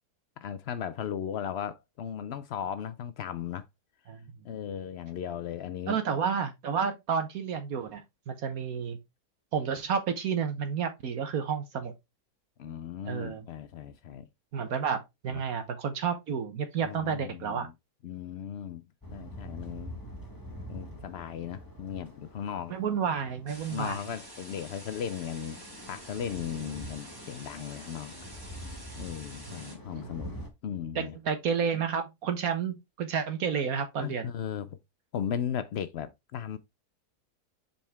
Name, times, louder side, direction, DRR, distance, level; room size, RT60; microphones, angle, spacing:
voice 1, 0.4-3.7 4.4-6.0 12.6-14.3 15.3-15.4 16.8-17.7 18.0-18.8 19.1-19.9 20.7-22.7 23.7-25.6 25.9-28.2 28.6-30.3 30.6-31.1 34.0-34.8 35.1-36.6, left 8 dB, 90° left, 0.5 m, -36 dB
voice 2, 5.9-9.0 9.5-11.9 13.0-13.4 14.5-17.7 22.7-24.0 29.5-29.7 30.9-34.3, right 6 dB, 65° right, 1.3 m, -31 dB
sound 1, 19.0-30.5, equal, 15° left, 1.3 m, -45 dB
sound 2, 23.5-29.8, right 1 dB, 15° right, 2.2 m, -48 dB
7.2 x 4.3 x 3.3 m
omnidirectional pair, 1.7 m